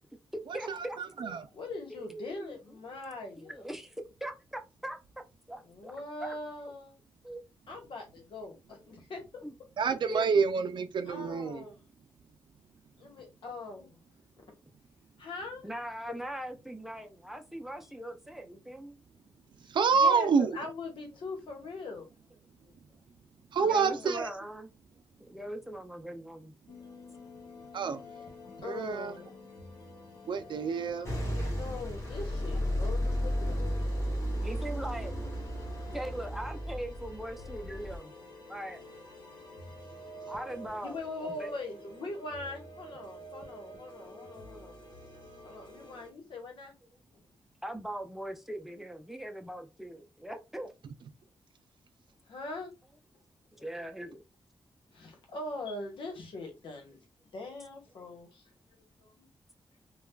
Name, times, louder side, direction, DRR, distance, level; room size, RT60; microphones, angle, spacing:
voice 1, 0.3-1.4 1.9-2.6 3.4-5.0 5.5-6.3 7.2-7.4 9.4-9.5 10.1-10.3 15.6-19.0 23.6-24.7 25.3-26.5 34.4-35.4 35.9-38.1 38.5-38.8 40.3-41.5 47.6-50.7 53.6-54.2, right 1 dB, 5° right, 0.5 m, -41 dB
voice 2, 1.5-3.6 5.6-7.0 7.7-9.4 11.1-11.9 13.0-14.0 15.2-15.6 19.6-22.1 22.6-22.7 23.6-24.1 27.9-28.2 28.6-29.4 31.2-33.8 39.9-44.7 45.4-46.7 52.3-52.7 53.5-53.8 54.9-57.0 57.3-58.5 59.0-59.3, left 2 dB, 85° left, 1.1 m, -42 dB
voice 3, 9.8-11.6 19.7-20.5 23.5-24.3 27.7-28.0 28.6-29.1 30.3-31.1, right 5 dB, 70° right, 0.4 m, -27 dB
sound 1, 26.7-46.1, left 1 dB, 60° left, 1.0 m, -49 dB
sound 2, 31.0-38.0, equal, 40° left, 1.3 m, -33 dB
3.3 x 2.3 x 2.2 m
wide cardioid pair, 105°, 8 cm